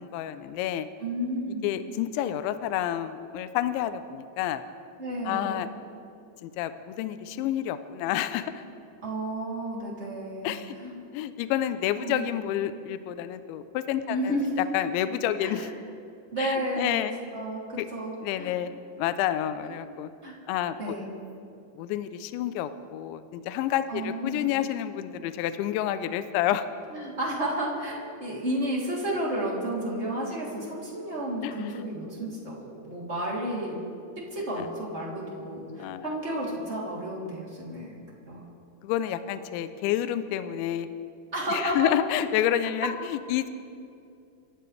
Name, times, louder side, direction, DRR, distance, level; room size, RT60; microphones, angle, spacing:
voice 1, 0.0-0.9 1.6-4.6 5.3-5.7 6.4-8.6 10.4-10.8 11.1-14.3 14.7-15.7 16.4-17.1 17.8-17.9 18.2-18.7 19.0-20.1 20.5-21.0 21.8-26.7 31.4-31.5 34.6-34.7 35.8-36.1 38.8-40.9 41.5-43.5, left 11 dB, 85° left, 11 dB, 2.7 m, -29 dB
voice 2, 1.0-1.7 5.0-5.7 9.0-10.9 12.0-12.3 14.1-14.5 15.4-15.6 16.3-17.1 17.3-18.5 19.6-19.7 20.2-20.3 20.8-21.1 23.9-24.5 26.9-27.9 28.2-33.8 34.3-37.9 38.3-38.4 41.3-41.9, right 1 dB, 20° right, -5 dB, 2.1 m, -32 dB
28.0 x 15.0 x 3.3 m, 2.5 s
omnidirectional pair, 5.9 m